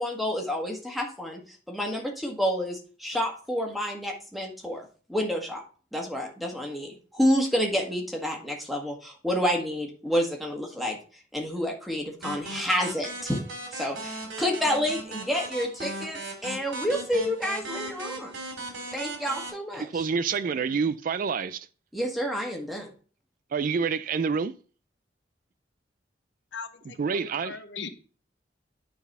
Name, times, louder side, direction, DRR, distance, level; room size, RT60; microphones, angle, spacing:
voice 1, 0.0-1.4 1.7-5.6 5.9-11.0 11.3-13.4 13.7-18.3 18.9-20.0 21.9-22.9, equal, ahead, 1.6 m, -29 dB
sound 1, 12.2-19.5, right 2 dB, 85° right, 2.9 m, -38 dB
voice 2, 19.8-21.7 23.5-24.5 27.0-27.6, right 5 dB, 50° right, 0.3 m, -27 dB
voice 3, 26.5-27.9, left 5 dB, 80° left, 0.9 m, -39 dB
9.6 x 4.0 x 5.3 m
head